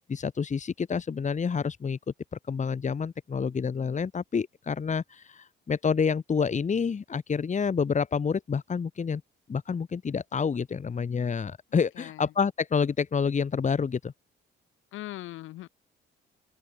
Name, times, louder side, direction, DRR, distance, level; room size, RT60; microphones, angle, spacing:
voice 1, 0.0-2.0 2.5-9.2 9.5-14.1, left 6 dB, 35° left, 2.3 m, -28 dB
voice 2, 11.7-12.3 14.9-15.7, left 15 dB, 90° left, 7.7 m, -41 dB
open air
cardioid pair, 90°, 20 cm